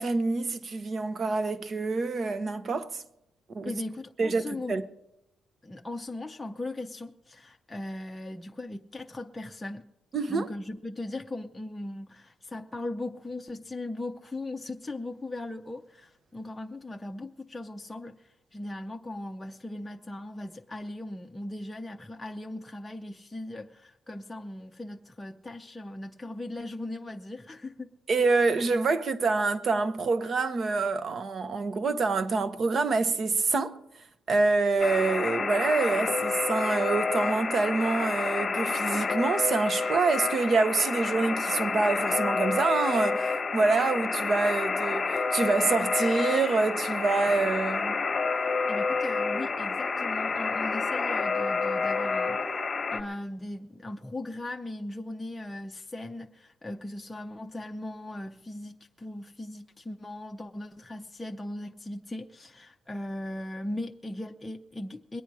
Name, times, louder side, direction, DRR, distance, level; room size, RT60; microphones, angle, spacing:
voice 1, 0.0-3.0 3.5-3.7 4.2-4.8 10.1-10.5 28.1-33.8 34.3-48.0, right 3 dB, 45° right, 1.0 m, -26 dB
voice 2, 3.6-4.7 5.6-9.9 10.3-27.9 48.7-65.2, left 1 dB, 15° left, 0.6 m, -38 dB
Alarm, 34.8-53.0, left 4 dB, 30° left, 1.3 m, -29 dB
22.0 x 8.9 x 4.8 m
cardioid pair, 90°, 0 cm